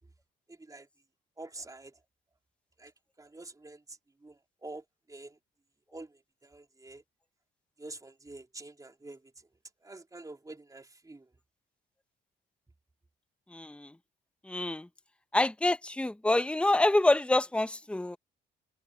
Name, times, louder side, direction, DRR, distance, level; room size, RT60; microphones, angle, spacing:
voice 1, 0.5-0.9 1.4-2.0 2.8-2.9 3.2-5.4 5.9-7.0 7.8-9.5 9.8-11.3, right 2 dB, 15° right, 3.6 m, -47 dB
voice 2, 13.5-13.9 14.4-14.9 15.3-18.2, left 2 dB, 5° left, 1.0 m, -27 dB
cardioid pair, 90°, 20 cm